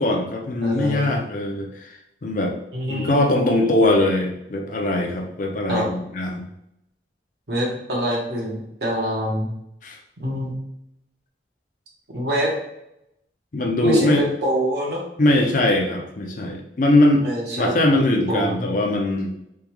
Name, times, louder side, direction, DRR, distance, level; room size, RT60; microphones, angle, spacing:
voice 1, 0.0-2.5 2.9-6.5 9.8-10.0 13.5-14.2 15.2-19.3, left 1 dB, 45° left, 2 dB, 0.5 m, -21 dB
voice 2, 0.6-1.1 2.7-3.5 5.7-5.9 7.5-9.5 10.2-10.6 12.1-12.5 13.8-15.0 17.1-18.8, equal, 65° right, -3 dB, 1.0 m, -25 dB
3.5 x 2.2 x 2.9 m, 0.81 s
head